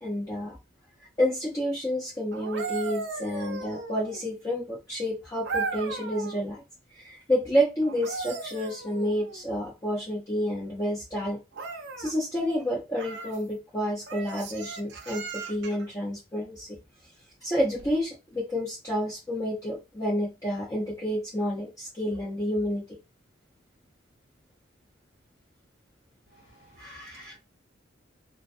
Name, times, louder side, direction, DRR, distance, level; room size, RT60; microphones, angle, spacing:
voice 1, 0.0-0.6 1.2-6.6 7.0-11.4 12.0-16.7 17.4-22.8 26.8-27.4, equal, 15° left, 0.7 m, -29 dB
sound 1, 2.3-4.3 5.4-6.4 7.8-9.4 11.5-12.1 13.0-13.4 14.1-15.9 17.7-17.9, right 4 dB, 55° right, 0.5 m, -36 dB
voice 2, 26.3-27.4, equal, 75° left, 1.1 m, -58 dB
2.2 x 2.2 x 2.5 m
head